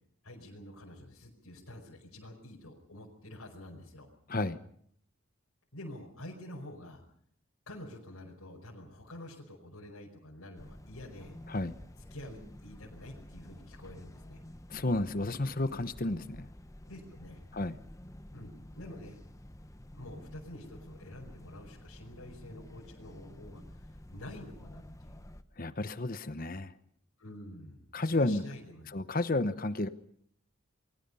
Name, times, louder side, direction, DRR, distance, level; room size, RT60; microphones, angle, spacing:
voice 1, 0.2-4.1 5.7-7.0 7.7-11.3 12.1-14.4 16.8-17.4 18.3-19.2 19.9-25.3 27.2-28.9, left 1 dB, 85° left, -2 dB, 5.1 m, -48 dB
voice 2, 4.3-4.6 11.5-11.8 14.7-16.5 17.5-17.7 25.6-26.7 27.9-28.4 28.9-29.9, left 2 dB, 40° left, 12 dB, 0.9 m, -31 dB
sound 1, 10.6-25.4, left 1 dB, 15° left, 0.9 m, -50 dB
28.5 x 22.5 x 5.6 m, 0.65 s
head